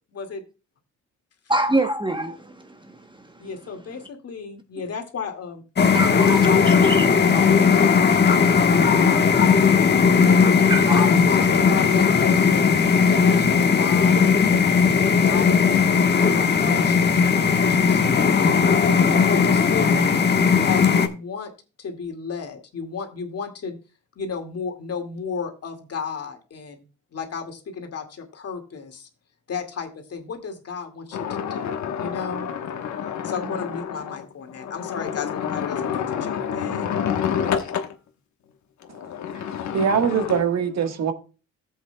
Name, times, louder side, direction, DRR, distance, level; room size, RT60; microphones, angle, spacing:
voice 1, 0.1-0.4 3.4-5.6 6.3-9.6 10.2-12.6 13.1-14.2 14.5-15.8 16.1-17.1 17.5-20.1 20.6-21.5 21.8-23.8 24.2-26.8 27.1-29.1 29.5-32.5 33.2-37.0, left 5 dB, 55° left, 2.2 m, -33 dB
voice 2, 1.5-3.5 5.9-7.1 10.7-11.1, right 1 dB, 15° right, 0.9 m, -26 dB
sound 1, 5.8-21.1, left 6 dB, 35° left, 1.2 m, -17 dB
sound 2, 31.1-37.9 38.8-40.4, left 8 dB, 70° left, 1.2 m, -28 dB
voice 3, 39.3-41.1, right 7 dB, 60° right, 1.5 m, -23 dB
14.5 x 7.9 x 2.2 m
cardioid pair, 90°, 30 cm